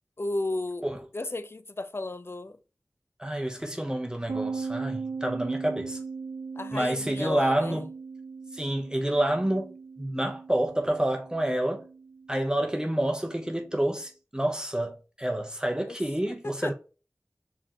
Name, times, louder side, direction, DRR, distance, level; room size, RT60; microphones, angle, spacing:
voice 1, 0.2-0.9 1.1-2.6 6.6-7.8 15.9-16.0 16.3-16.7, left 2 dB, 45° left, 0.5 m, -33 dB
voice 2, 3.2-6.0 6.7-7.9 8.5-11.8 12.3-16.7, right 1 dB, 15° right, 0.8 m, -28 dB
sound 1, 4.3-13.7, right 4 dB, 85° right, 0.4 m, -39 dB
4.6 x 3.6 x 2.9 m
wide cardioid pair, 45°, 6 cm